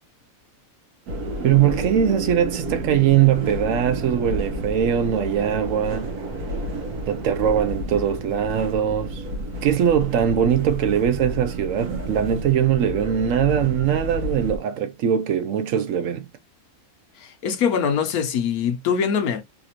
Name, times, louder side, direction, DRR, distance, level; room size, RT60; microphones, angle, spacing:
sound 1, 1.1-14.6, right 1 dB, 85° right, 1.4 m, -31 dB
voice 1, 1.4-6.1 7.1-9.2 9.6-16.3, right 9 dB, 70° right, 0.9 m, -21 dB
voice 2, 17.2-19.4, left 7 dB, 80° left, 1.2 m, -23 dB
4.1 x 2.5 x 2.8 m
omnidirectional pair, 1.6 m